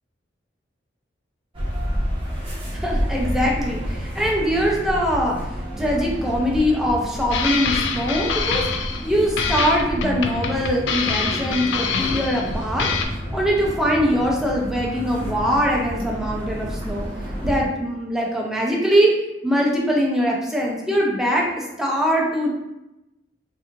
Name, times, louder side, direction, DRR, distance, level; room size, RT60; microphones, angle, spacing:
sound 1, 1.5-17.6, equal, 30° right, 0.8 m, -30 dB
voice 1, 2.7-5.4 5.8-8.7 9.0-12.9 13.3-17.1 17.4-19.1 19.4-22.5, equal, 5° right, -3 dB, 0.6 m, -22 dB
sound 2, 7.3-9.1 9.4-12.5 12.8-13.0, left 6 dB, 85° left, 0.4 m, -25 dB
4.0 x 2.6 x 2.5 m, 0.92 s
head